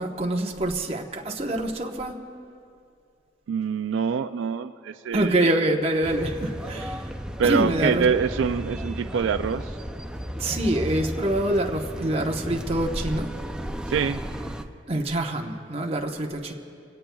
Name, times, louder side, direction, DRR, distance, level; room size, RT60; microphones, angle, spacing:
voice 1, 0.0-2.2 5.1-7.1 7.4-8.1 10.3-13.3 14.9-16.5, right 1 dB, 30° right, 1 dB, 1.0 m, -25 dB
voice 2, 3.5-5.5 7.4-9.8 13.9-14.2, right 6 dB, 80° right, 10 dB, 0.3 m, -25 dB
sound 1, 6.0-14.6, equal, 5° right, 0.4 m, -34 dB
23.5 x 17.5 x 2.3 m, 2.4 s
head